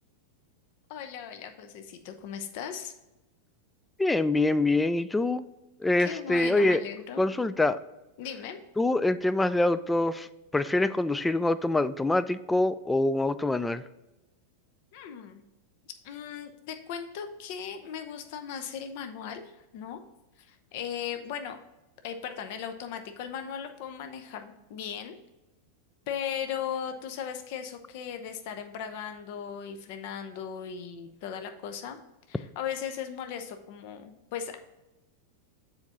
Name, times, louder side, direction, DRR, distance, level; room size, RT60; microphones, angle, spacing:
voice 1, 0.9-2.9 6.0-7.3 8.2-8.6 14.9-15.4 16.0-19.4 19.7-20.0 20.4-21.6 22.0-25.1 26.1-32.0 32.3-34.6, left 8 dB, 50° left, 7 dB, 0.7 m, -37 dB
voice 2, 4.0-5.5 5.8-6.8 7.2-7.8 8.8-10.3 10.5-13.8, left 2 dB, 10° left, 14 dB, 0.3 m, -25 dB
7.0 x 4.5 x 3.9 m, 1.0 s
figure-of-eight pair, 90°, 0 cm